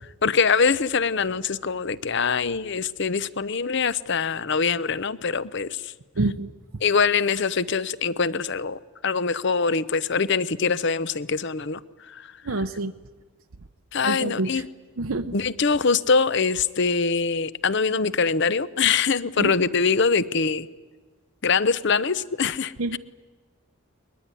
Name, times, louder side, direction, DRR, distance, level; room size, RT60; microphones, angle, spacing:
voice 1, 0.2-5.9 6.8-11.8 13.9-14.7 15.3-20.7 21.4-23.0, left 5 dB, 50° left, 17 dB, 0.7 m, -23 dB
voice 2, 6.2-6.5 12.5-12.9 14.0-14.6 15.0-15.3 19.4-19.5 22.8-23.0, right 2 dB, 70° right, 6 dB, 0.7 m, -27 dB
22.0 x 21.0 x 9.8 m, 1.3 s
head